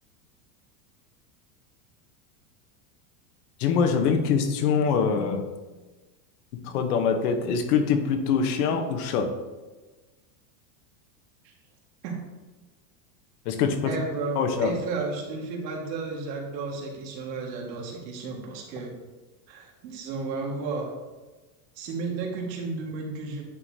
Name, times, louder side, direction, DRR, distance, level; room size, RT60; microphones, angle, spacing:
voice 1, 3.6-5.5 6.6-9.3 13.4-13.9 14.3-14.8, left 6 dB, 65° left, 6 dB, 1.0 m, -24 dB
voice 2, 13.8-18.9 19.5-20.9 21.8-23.4, right 4 dB, 90° right, 0 dB, 1.8 m, -33 dB
9.5 x 4.7 x 2.7 m, 1.2 s
supercardioid pair, 170°, 49 cm